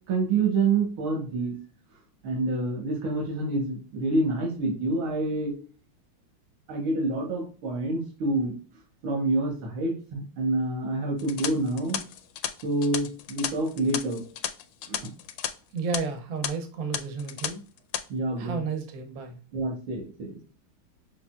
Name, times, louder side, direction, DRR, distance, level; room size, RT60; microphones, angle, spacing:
voice 1, 0.1-1.5 2.2-5.5 6.7-8.5 9.0-12.0 12.6-14.2 14.9-15.0 18.1-18.6 19.5-20.4, right 2 dB, 80° right, 0 dB, 2.0 m, -27 dB
sound 1, 11.2-15.5 15.8-16.0 16.4-16.5 16.9-17.5 17.8-18.0, left 11 dB, 85° left, 1.4 m, -33 dB
voice 2, 15.7-17.6 18.4-19.4, right 4 dB, 55° right, 6 dB, 1.2 m, -32 dB
6.0 x 3.3 x 2.2 m, 0.38 s
omnidirectional pair, 2.3 m